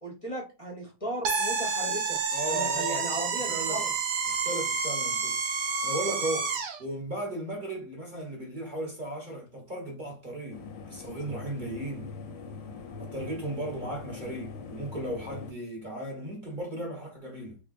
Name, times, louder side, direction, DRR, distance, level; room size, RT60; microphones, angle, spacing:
voice 1, 0.0-2.2 2.5-3.9, right 1 dB, 35° left, 0.5 m, -36 dB
sound 1, 1.3-6.8, right 4 dB, 70° right, 1.2 m, -29 dB
voice 2, 2.3-3.2 3.5-3.8 4.3-5.4 5.8-6.5 6.8-12.1 13.0-17.6, right 1 dB, 40° right, 0.7 m, -36 dB
sound 2, 10.5-15.5, left 4 dB, 75° left, 1.3 m, -42 dB
3.6 x 3.3 x 2.4 m
omnidirectional pair, 2.1 m